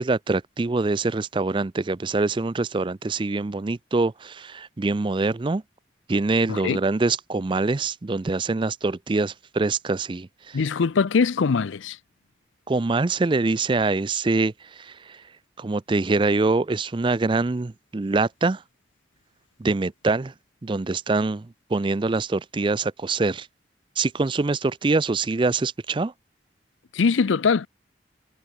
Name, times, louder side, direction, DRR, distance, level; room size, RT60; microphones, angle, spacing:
voice 1, 0.0-5.6 6.1-10.6 12.7-15.2 15.6-18.6 19.6-20.3 20.6-23.5 24.0-26.1, right 3 dB, 25° right, 0.4 m, -24 dB
voice 2, 10.5-12.0 26.9-27.7, left 5 dB, 85° left, 0.5 m, -22 dB
head